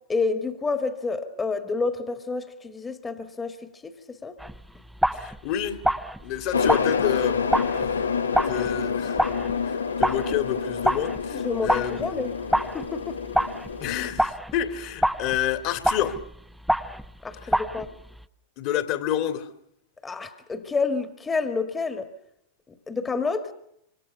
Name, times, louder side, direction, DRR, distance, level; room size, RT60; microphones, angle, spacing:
voice 1, 0.1-4.4 11.3-12.3 12.7-13.2 17.2-17.9 20.0-22.1 22.7-23.5, left 4 dB, 15° left, 1.9 m, -29 dB
sound 1, 4.4-18.3, right 1 dB, ahead, 0.9 m, -28 dB
voice 2, 5.1-5.8 6.2-7.5 8.5-9.2 9.7-12.3 13.8-16.2 18.6-19.5, left 10 dB, 45° left, 2.5 m, -29 dB
sound 2, 6.5-14.1, left 6 dB, 75° left, 1.2 m, -28 dB
27.0 x 26.0 x 5.6 m
figure-of-eight pair, 90°, 0 cm